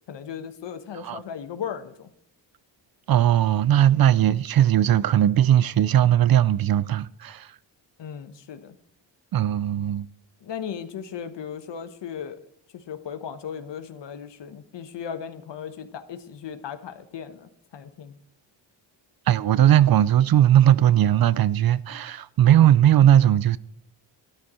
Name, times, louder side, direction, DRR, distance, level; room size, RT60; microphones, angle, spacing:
voice 1, 0.1-2.1 8.0-8.8 10.4-12.4 12.7-18.2, left 8 dB, 65° left, 1.2 m, -36 dB
voice 2, 3.1-7.5 9.3-10.1 19.3-23.6, right 11 dB, 55° right, 0.5 m, -18 dB
12.5 x 11.0 x 4.3 m
cardioid pair, 110°, 45 cm